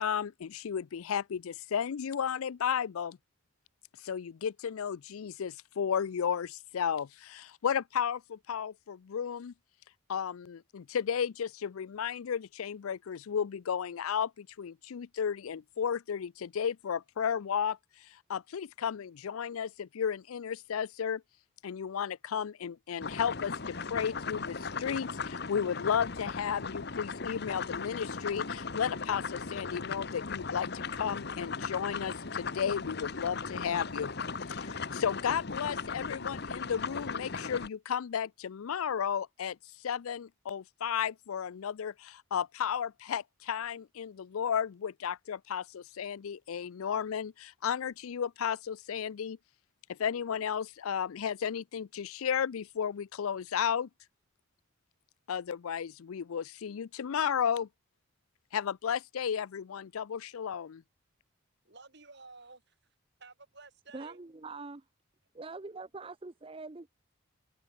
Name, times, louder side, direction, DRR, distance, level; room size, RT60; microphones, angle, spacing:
voice 1, 0.0-3.2 4.0-9.5 10.1-21.2 21.6-34.1 34.5-39.6 39.8-49.4 49.9-53.9 55.3-57.7 58.5-60.8, left 7 dB, 80° left, 0.4 m, -33 dB
sound 1, 23.0-37.7, left 4 dB, 50° left, 1.1 m, -37 dB
sound 2, 25.9-29.1 29.4-29.6, equal, 10° left, 7.5 m, -58 dB
voice 2, 61.7-62.7 63.2-64.2, right 3 dB, 50° right, 5.3 m, -53 dB
voice 3, 63.9-64.9 65.3-66.8, right 3 dB, 25° right, 0.6 m, -43 dB
head